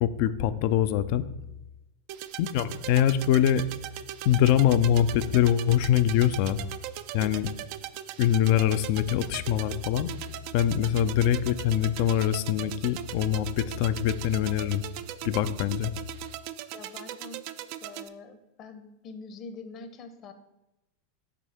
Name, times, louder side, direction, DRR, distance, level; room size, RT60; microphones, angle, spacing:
voice 1, 0.0-1.3 2.4-3.7 4.3-6.6 7.1-7.5 8.2-10.1 10.5-14.8 15.2-15.9, left 10 dB, 55° left, 13 dB, 0.4 m, -24 dB
sound 1, 2.1-18.1, right 12 dB, 55° right, 0.3 m, -39 dB
voice 2, 16.7-17.5 17.8-20.3, left 4 dB, 40° left, 9 dB, 0.8 m, -45 dB
6.0 x 3.5 x 5.7 m, 0.95 s
hypercardioid pair, 90°, 0 cm